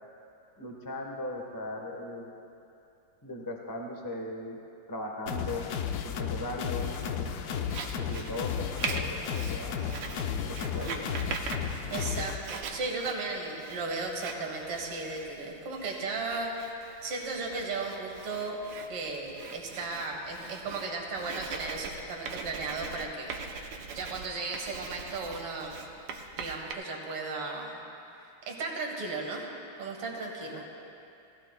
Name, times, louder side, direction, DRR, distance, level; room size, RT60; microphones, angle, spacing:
voice 1, 0.6-2.3 3.2-4.6 4.9-5.6 6.0-7.7 8.0-9.7 10.2-11.2 30.5-30.7, left 1 dB, 20° left, 0 dB, 0.6 m, -38 dB
sound 1, 5.3-12.4, left 8 dB, 90° left, 0.8 m, -33 dB
Writing, 6.9-26.7, right 5 dB, 65° right, 1.3 m, -42 dB
voice 2, 11.9-16.8 17.0-18.6 18.9-23.6 23.9-25.9 26.3-27.8 28.5-29.4 29.8-30.7, right 3 dB, 85° right, 0 dB, 2.4 m, -35 dB
18.5 x 15.0 x 2.2 m, 2.6 s
omnidirectional pair, 2.4 m